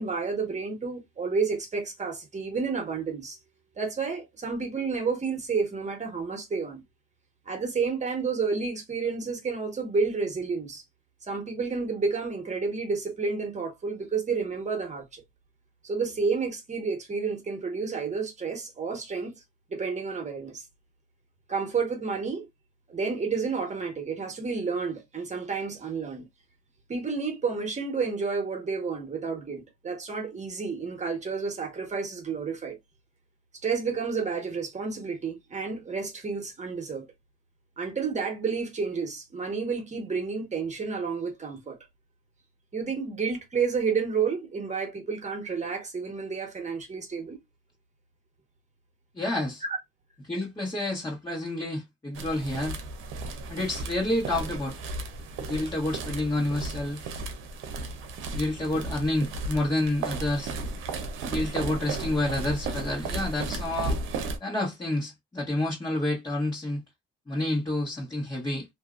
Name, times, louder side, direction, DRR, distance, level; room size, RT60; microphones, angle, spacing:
voice 1, 0.0-3.4 3.8-6.8 7.5-10.8 11.2-15.2 15.8-19.4 19.7-20.6 21.5-22.5 22.9-26.2 26.9-32.8 33.6-37.1 37.8-41.8 42.7-47.4 49.6-49.8, right 5 dB, 35° right, 1.3 m, -30 dB
voice 2, 49.1-49.6 50.2-52.8 53.5-54.8 55.4-57.1 58.3-60.5 61.2-64.0 64.4-66.8 67.3-68.7, left 1 dB, 20° left, 1.4 m, -29 dB
sound 1, 52.1-64.4, right 3 dB, 90° right, 0.7 m, -34 dB
2.7 x 2.7 x 2.4 m
cardioid pair, 90°, 20 cm